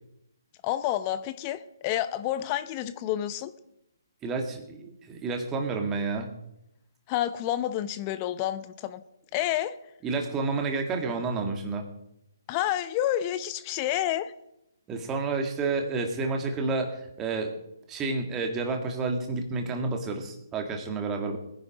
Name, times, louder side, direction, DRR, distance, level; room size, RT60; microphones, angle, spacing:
voice 1, 0.6-3.5 7.1-9.0 9.3-9.7 12.5-14.3, left 12 dB, 25° left, 14 dB, 0.7 m, -29 dB
voice 2, 4.2-6.3 10.0-11.9 14.9-17.5 17.9-21.4, right 3 dB, 15° right, 4 dB, 1.9 m, -30 dB
20.5 x 10.0 x 5.1 m, 0.83 s
figure-of-eight pair, 145°, 2 cm